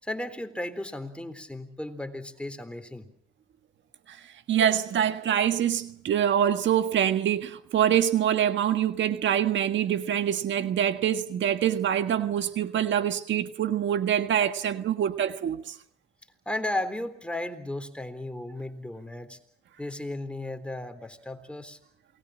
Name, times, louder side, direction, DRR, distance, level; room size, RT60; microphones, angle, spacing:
voice 1, 0.0-3.1 16.5-19.4 19.8-21.8, left 1 dB, 5° left, 3.7 m, -35 dB
voice 2, 4.5-15.7, right 10 dB, 70° right, 1.6 m, -25 dB
28.0 x 20.5 x 7.6 m
cardioid pair, 90°, 20 cm